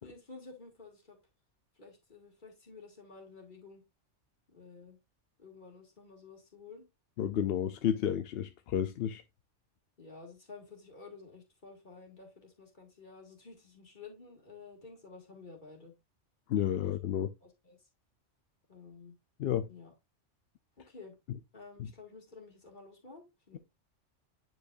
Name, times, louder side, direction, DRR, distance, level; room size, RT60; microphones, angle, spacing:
voice 1, 0.0-1.2 1.8-3.8 4.5-5.0 5.4-6.9 10.0-15.9 17.4-17.9 18.7-19.2 19.7-19.9 20.8-21.1 21.5-23.6, left 4 dB, 40° left, 2.3 m, -52 dB
voice 2, 7.2-9.2 16.5-17.3 19.4-19.7 21.8-21.9, left 10 dB, 65° left, 0.7 m, -31 dB
9.3 x 5.0 x 2.5 m
omnidirectional pair, 1.3 m